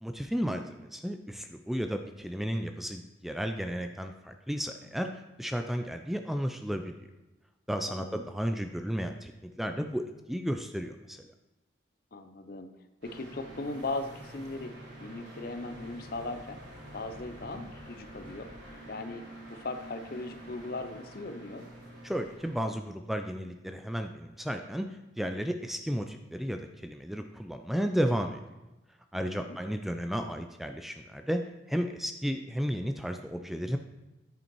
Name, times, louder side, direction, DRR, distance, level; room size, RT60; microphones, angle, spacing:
voice 1, 0.0-6.9 7.7-11.2 22.0-28.4 29.1-33.8, equal, ahead, 6 dB, 0.3 m, -33 dB
voice 2, 7.9-8.2 12.1-12.7 13.0-14.7 15.0-16.6 16.9-18.5 18.9-19.2 19.5-21.6 29.1-29.6, left 2 dB, 50° left, 9 dB, 0.6 m, -38 dB
sound 1, 13.0-22.6, right 1 dB, 85° right, 3.0 m, -47 dB
10.0 x 5.3 x 4.6 m, 1.0 s
head